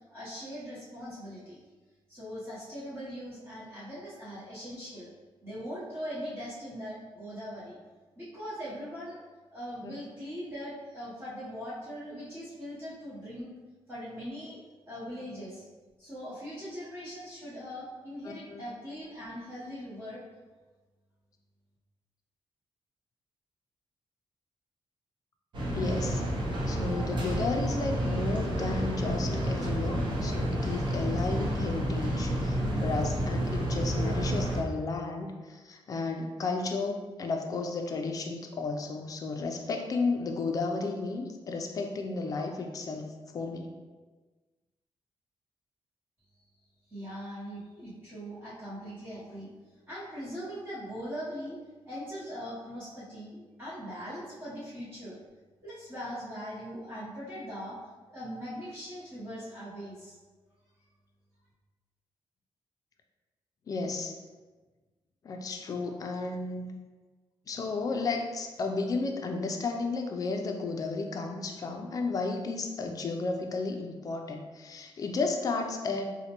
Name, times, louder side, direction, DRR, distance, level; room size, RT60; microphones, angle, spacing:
voice 1, 0.1-1.6 2.1-5.1 5.4-7.8 8.2-9.2 9.5-13.5 13.9-14.6 14.9-15.6 16.0-20.2 46.9-49.5 49.9-51.6 51.9-55.2 55.6-57.8 58.1-60.2, equal, 25° right, -10 dB, 0.8 m, -40 dB
voice 2, 18.2-18.6 25.7-26.2 26.7-43.7 63.7-64.1 65.2-66.7 67.5-76.2, left 3 dB, 35° left, 3 dB, 0.3 m, -33 dB
sound 1, 25.5-34.6, right 1 dB, 50° right, 0.7 m, -30 dB
4.1 x 2.1 x 2.9 m, 1.3 s
wide cardioid pair, 170°, 10 cm